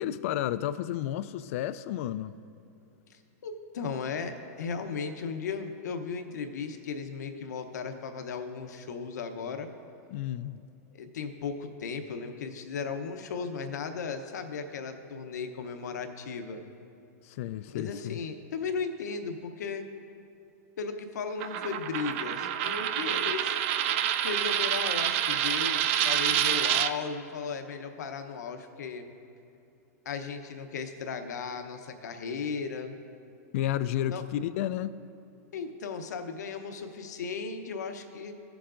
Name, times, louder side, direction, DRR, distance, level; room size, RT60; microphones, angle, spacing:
voice 1, 0.0-2.3 10.1-10.6 17.2-18.2 33.5-35.0, left 12 dB, 55° left, 0.3 m, -32 dB
voice 2, 3.1-9.7 10.9-16.6 17.7-19.8 20.8-23.6 24.2-29.1 30.0-33.0 34.1-34.2 35.5-38.3, left 5 dB, 80° left, 0.8 m, -36 dB
Coin (dropping), 21.4-26.9, right 10 dB, 50° right, 0.4 m, -27 dB
15.0 x 7.0 x 2.5 m
hypercardioid pair, 140°, 9 cm